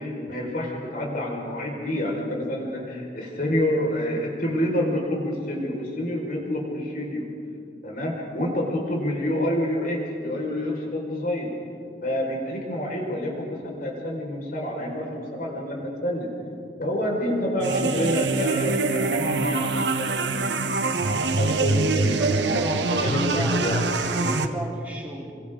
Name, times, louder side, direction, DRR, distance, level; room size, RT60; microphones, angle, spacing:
voice 1, 0.0-7.3 7.8-11.5 12.0-16.3 16.8-20.6 21.3-23.8, equal, 50° left, -2 dB, 5.2 m, -28 dB
sound 1, 17.6-24.4, right 3 dB, 85° right, 1.2 m, -24 dB
voice 2, 22.2-25.3, equal, 10° right, -4 dB, 3.9 m, -34 dB
28.5 x 24.0 x 3.9 m, 2.4 s
head